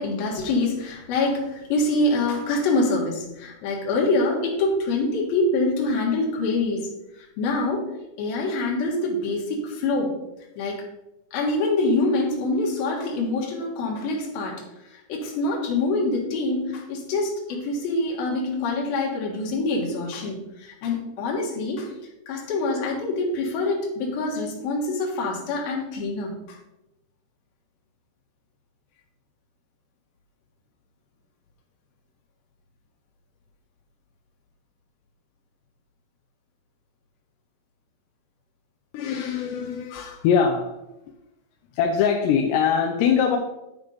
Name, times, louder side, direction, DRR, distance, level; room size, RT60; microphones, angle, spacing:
voice 1, 0.0-6.9 7.2-7.9 8.2-10.2 10.6-10.8 11.3-14.6 14.9-21.9 22.3-26.6, left 2 dB, 65° left, -1 dB, 3.1 m, -25 dB
voice 2, 38.9-40.8 41.7-43.4, left 7 dB, 85° left, 2 dB, 2.7 m, -22 dB
10.5 x 3.6 x 5.4 m, 0.93 s
omnidirectional pair, 5.0 m